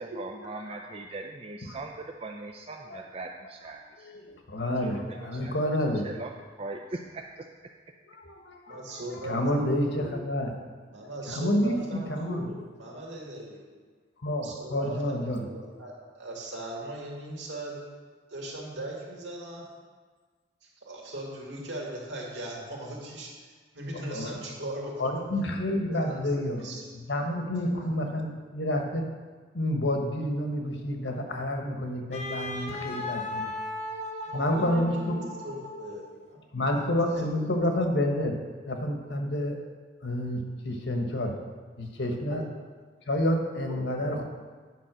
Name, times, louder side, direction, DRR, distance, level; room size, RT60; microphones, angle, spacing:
voice 1, 0.0-4.1 4.6-5.5 6.0-6.3 6.6-7.4, right 2 dB, 30° right, 2 dB, 0.4 m, -40 dB
voice 2, 4.5-6.1 8.1-8.8 9.2-10.5 11.3-12.4 14.2-15.4 24.1-24.3 25.0-26.7 26.9-29.0 29.5-33.5 34.3-35.2 36.5-38.4 38.6-39.6 40.0-41.3 41.8-42.4 43.1-44.2, left 1 dB, 70° left, 3 dB, 1.3 m, -29 dB
voice 3, 8.7-10.3 10.9-13.6 14.4-17.8 18.3-19.6 20.6-25.1 25.9-26.9 27.8-27.9 34.3-36.4 36.7-36.8 42.3-42.4 43.6-43.9, right 1 dB, 80° right, -2 dB, 2.2 m, -39 dB
Wind instrument woodwind instrument, 32.1-36.2, left 2 dB, 35° left, 1.0 m, -36 dB
9.5 x 5.4 x 6.1 m, 1.5 s
head